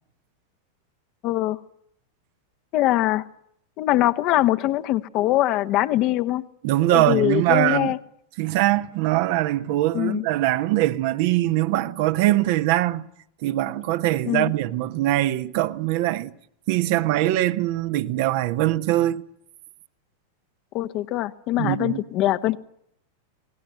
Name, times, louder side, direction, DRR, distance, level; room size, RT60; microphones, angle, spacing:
voice 1, 1.2-1.6 2.7-3.2 3.8-6.4 6.9-8.0 9.9-10.2 14.2-14.5 20.7-22.6, left 15 dB, 40° left, 1.3 m, -22 dB
voice 2, 6.6-7.9 8.4-13.0 13.4-16.3 16.7-19.2 21.6-22.0, right 15 dB, 50° right, 1.3 m, -22 dB
27.0 x 19.0 x 9.1 m
figure-of-eight pair, 90°, 0 cm